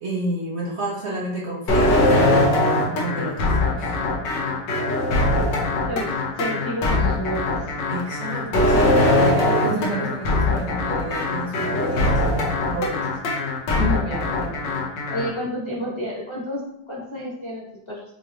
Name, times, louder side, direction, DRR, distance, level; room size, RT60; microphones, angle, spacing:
voice 1, 0.0-4.0 7.9-13.2, right 2 dB, 55° right, -4 dB, 0.8 m, -31 dB
sound 1, 1.7-15.3, left 2 dB, 85° left, 1.6 m, -21 dB
voice 2, 5.9-7.6 9.6-10.0 13.8-14.6 15.1-18.0, equal, 20° left, -5 dB, 1.1 m, -30 dB
6.4 x 3.0 x 2.4 m, 0.81 s
omnidirectional pair, 2.0 m